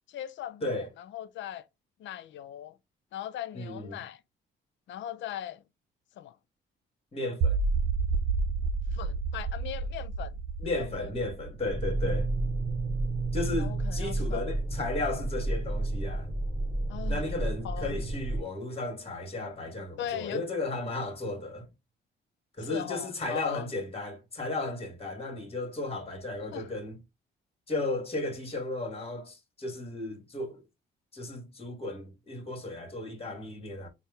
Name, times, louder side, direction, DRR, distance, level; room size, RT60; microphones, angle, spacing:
voice 1, 0.1-1.7 2.0-2.8 3.1-4.2 4.9-5.6 6.2-6.4 8.9-10.4 10.7-11.1 13.6-14.6 16.9-17.2 17.6-18.0 20.0-20.5 22.6-23.7 26.5-26.7, left 11 dB, 70° left, 0.5 m, -39 dB
voice 2, 3.5-4.0 7.1-7.6 10.6-12.3 13.3-16.3 17.1-21.7 22.6-27.0 27.7-30.6 31.1-33.9, left 2 dB, 30° left, 1.4 m, -34 dB
sound 1, 7.4-13.5, right 4 dB, 70° right, 0.7 m, -31 dB
sound 2, 11.7-18.4, right 2 dB, 25° right, 0.9 m, -31 dB
4.3 x 2.2 x 3.4 m
cardioid pair, 90°, 20 cm